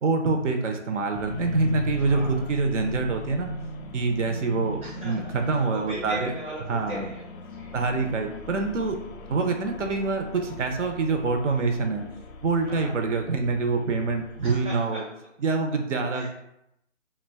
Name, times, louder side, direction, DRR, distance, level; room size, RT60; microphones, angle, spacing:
voice 1, 0.0-3.5 3.9-6.3 6.7-7.0 7.7-9.0 9.3-12.0 12.4-15.0 15.4-16.3, right 4 dB, 70° right, 5 dB, 0.5 m, -25 dB
sound 1, 1.1-14.7, left 3 dB, 85° left, 0.5 m, -39 dB
voice 2, 2.0-2.4 4.8-5.2 5.7-7.7 12.7-12.9 14.4-15.0 16.1-16.3, right 1 dB, 10° right, -8 dB, 0.5 m, -38 dB
2.2 x 2.1 x 3.3 m, 0.80 s
figure-of-eight pair, 145°, 38 cm